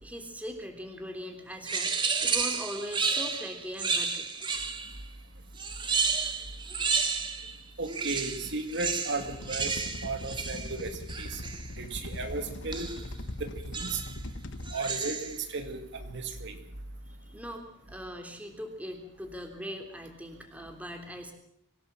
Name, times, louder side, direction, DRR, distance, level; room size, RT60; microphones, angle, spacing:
voice 1, 0.0-4.3 6.2-6.3 17.3-21.3, equal, 5° right, 4 dB, 3.5 m, -40 dB
sound 1, 1.6-5.0 5.6-7.6 7.9-11.7 12.7-13.1 13.7-14.2 14.6-15.4, right 5 dB, 25° right, 2.1 m, -31 dB
voice 2, 7.8-9.7 10.0-10.9 11.2-11.4 11.8-12.9 13.4-14.0 14.7-16.6, right 3 dB, 60° right, 5 dB, 2.3 m, -35 dB
sound 2, 9.2-14.8, left 1 dB, 60° left, 1.3 m, -41 dB
25.0 x 17.0 x 7.6 m, 0.72 s
head